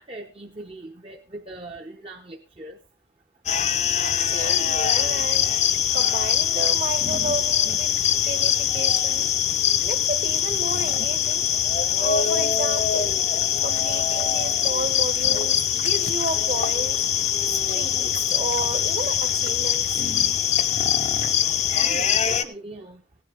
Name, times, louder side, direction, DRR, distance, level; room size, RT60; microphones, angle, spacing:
voice 1, 0.0-2.8 21.7-23.0, right 2 dB, 30° right, 1 dB, 0.8 m, -40 dB
sound 1, 3.5-22.4, left 9 dB, 40° left, 0.7 m, -23 dB
voice 2, 4.3-5.6 5.9-9.3 9.8-11.5 11.9-13.2 13.6-17.1 17.5-20.1, right 2 dB, 50° right, 9 dB, 1.4 m, -32 dB
16.5 x 9.7 x 3.6 m, 0.33 s
head